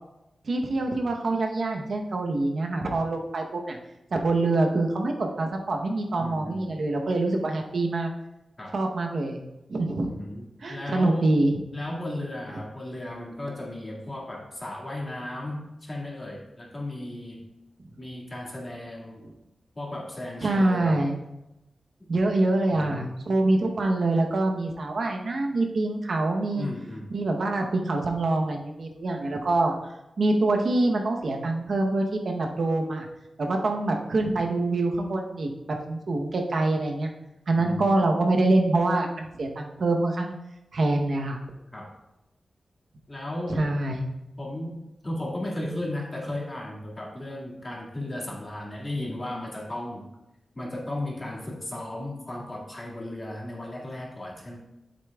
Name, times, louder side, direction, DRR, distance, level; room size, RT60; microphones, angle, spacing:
voice 1, 0.4-3.8 4.1-8.1 8.7-9.4 9.7-10.1 10.6-11.5 20.4-21.2 22.1-26.7 27.1-29.7 30.2-33.1 33.4-35.5 35.9-37.1 37.5-40.3 40.7-41.4 43.6-44.0, right 2 dB, 65° right, 2 dB, 0.9 m, -25 dB
voice 2, 6.2-6.8 8.6-8.8 10.1-10.4 10.7-11.4 11.7-17.5 18.0-19.2 19.8-21.0 22.7-23.0 26.6-27.1 37.6-38.0 41.7-41.9 43.1-43.6 44.4-50.1 50.6-54.6, left 1 dB, 30° left, -3 dB, 1.9 m, -35 dB
8.2 x 7.7 x 2.3 m, 0.92 s
wide cardioid pair, 110°, 0 cm